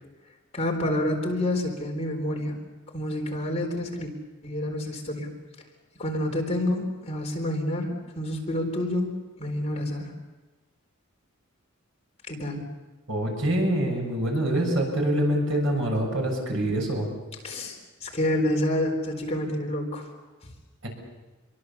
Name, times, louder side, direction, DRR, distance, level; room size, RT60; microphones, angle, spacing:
voice 1, 0.5-2.5 2.9-4.1 4.4-5.3 6.0-9.1 9.4-10.1 12.3-12.7 17.4-20.1, left 1 dB, 30° left, 2 dB, 4.0 m, -28 dB
voice 2, 13.1-17.1 20.8-20.9, right 1 dB, 65° right, 1 dB, 7.2 m, -25 dB
27.5 x 23.5 x 7.2 m, 1.2 s
head